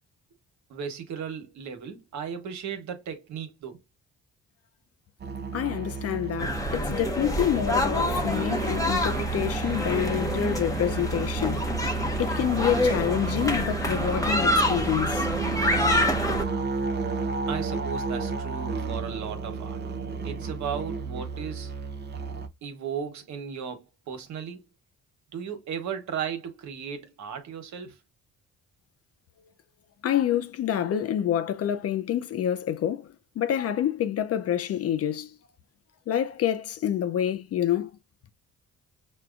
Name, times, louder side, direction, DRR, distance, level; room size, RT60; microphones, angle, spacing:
voice 1, 0.7-3.8 17.5-19.8 20.2-21.7 22.6-24.6 25.3-28.0, right 7 dB, 70° right, 1.1 m, -36 dB
sound 1, 5.2-22.5, right 4 dB, 35° right, 0.6 m, -32 dB
voice 2, 5.5-11.7 12.2-15.3 30.0-35.4 36.1-37.9, left 10 dB, 55° left, 0.5 m, -27 dB
sound 2, 6.4-16.4, left 1 dB, 10° left, 0.8 m, -27 dB
6.1 x 2.2 x 2.4 m
cardioid pair, 90°, 30 cm